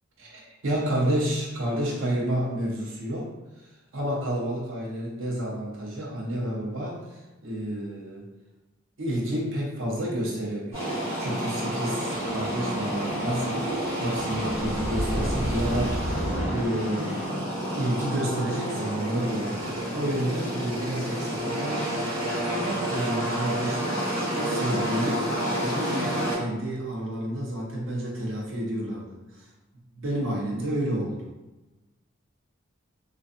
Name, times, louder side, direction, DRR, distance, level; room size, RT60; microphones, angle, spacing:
voice 1, 0.2-3.3 3.6-8.3 9.0-17.3 17.8-24.1 24.3-25.3 25.6-29.5 30.0-31.3, right 1 dB, 85° right, -3 dB, 0.7 m, -30 dB
sound 1, 10.7-26.4, right 1 dB, 30° right, 1.4 m, -30 dB
sound 2, 10.8-17.3, equal, 65° left, 0.6 m, -35 dB
2.5 x 2.4 x 2.4 m, 1.1 s
head